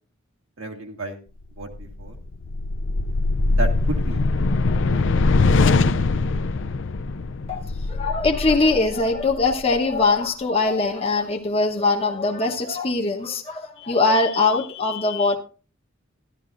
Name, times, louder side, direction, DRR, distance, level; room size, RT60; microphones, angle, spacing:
voice 1, 0.6-1.2 1.6-2.2 3.5-4.2 4.9-5.1, right 1 dB, 70° right, 2 dB, 1.7 m, -32 dB
sound 1, 1.6-10.0, left 3 dB, 65° left, 0.5 m, -22 dB
voice 2, 7.5-15.4, left 3 dB, 30° left, 1 dB, 1.0 m, -22 dB
14.0 x 11.5 x 2.5 m, 0.35 s
head